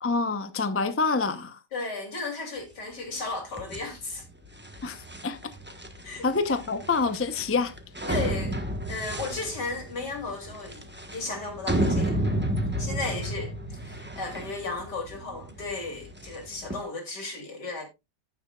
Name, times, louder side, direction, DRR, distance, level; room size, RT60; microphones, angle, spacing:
voice 1, 0.0-1.6 4.8-5.4 6.2-7.7, left 4 dB, 15° left, 0.4 m, -27 dB
voice 2, 1.7-4.2 6.0-6.3 8.1-8.6 8.9-10.8 11.1-12.3 12.8-13.5 13.9-17.8, left 3 dB, 75° left, 3.7 m, -34 dB
sound 1, 3.5-16.8, right 1 dB, 5° right, 1.1 m, -32 dB
15.5 x 7.1 x 2.4 m
omnidirectional pair, 1.8 m